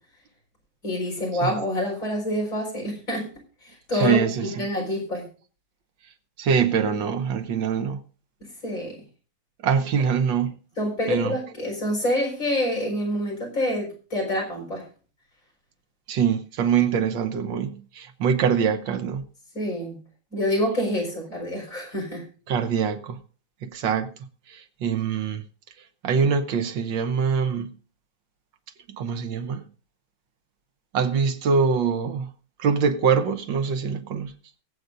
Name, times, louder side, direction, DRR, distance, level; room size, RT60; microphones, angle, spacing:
voice 1, 0.8-3.3 3.9-5.3 8.6-9.0 10.8-14.8 19.5-20.0 20.3-22.3, left 1 dB, 45° left, 4.8 m, -27 dB
voice 2, 3.9-4.7 6.4-8.0 9.6-10.6 11.1-11.4 16.1-19.2 22.5-23.2 23.6-24.1 24.5-25.4 26.0-27.7 28.9-29.6 30.9-32.3 32.6-34.3, right 6 dB, 85° right, 1.7 m, -24 dB
23.5 x 8.1 x 2.6 m
omnidirectional pair, 2.0 m